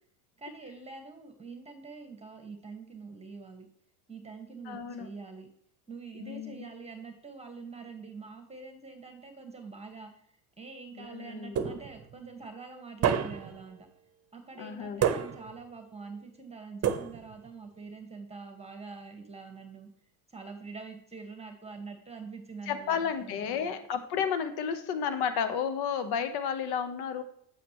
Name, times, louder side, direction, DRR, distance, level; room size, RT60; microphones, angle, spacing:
voice 1, 0.4-3.7 4.1-5.5 5.9-10.1 10.6-13.8 14.3-19.9 20.3-23.7, right 4 dB, 15° right, 5 dB, 1.6 m, -45 dB
voice 2, 4.7-5.1 6.1-6.7 10.9-11.6 14.6-15.0 22.7-27.2, left 7 dB, 55° left, 9 dB, 1.2 m, -32 dB
sound 1, 11.5-12.1 13.0-13.6 15.0-15.6 16.8-17.5, right 8 dB, 30° right, 1.0 m, -29 dB
9.0 x 8.2 x 3.1 m, 0.67 s
hypercardioid pair, 85°, 47 cm